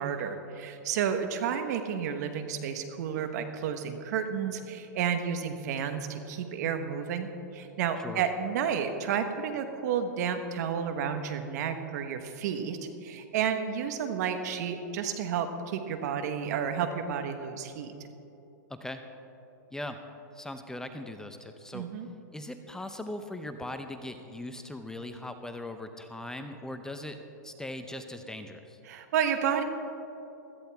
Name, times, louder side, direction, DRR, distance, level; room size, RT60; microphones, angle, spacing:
voice 1, 0.0-17.9 21.7-22.1 28.9-29.6, right 7 dB, 60° right, 7 dB, 1.3 m, -31 dB
voice 2, 18.7-19.0 19.7-20.0 20.3-21.9 22.3-27.2 27.4-28.8, left 1 dB, 5° left, 7 dB, 0.6 m, -39 dB
16.0 x 13.5 x 3.5 m, 2.9 s
hypercardioid pair, 125°, 10 cm